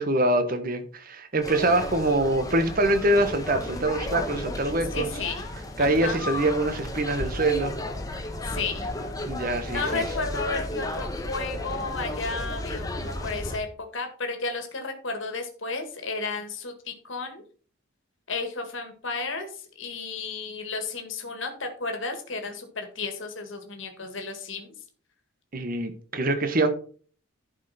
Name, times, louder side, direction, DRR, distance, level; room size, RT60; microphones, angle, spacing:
voice 1, 0.0-5.1 5.8-7.7 9.2-10.0 25.5-26.7, right 2 dB, 45° right, 1.2 m, -24 dB
sound 1, 1.4-13.6, left 1 dB, 15° left, 1.1 m, -33 dB
voice 2, 4.9-5.5 5.8-6.2 8.4-8.9 9.7-13.7 13.9-17.4 18.3-24.7, left 4 dB, 70° left, 1.9 m, -33 dB
11.5 x 5.5 x 4.3 m
head